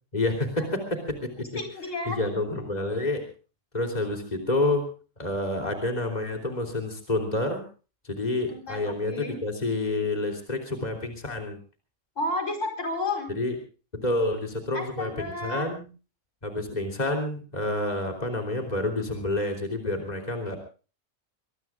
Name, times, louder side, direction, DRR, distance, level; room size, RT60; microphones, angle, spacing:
voice 1, 0.1-1.5 2.1-3.3 3.7-4.9 5.2-7.6 8.0-11.6 13.3-13.5 13.9-15.8 16.4-20.6, left 2 dB, 35° left, 3 dB, 3.4 m, -28 dB
voice 2, 1.5-2.2 4.3-4.4 8.5-9.4 12.2-13.3 14.7-15.7, left 2 dB, 75° left, 5 dB, 5.2 m, -32 dB
25.0 x 21.0 x 2.4 m, 0.36 s
omnidirectional pair, 1.3 m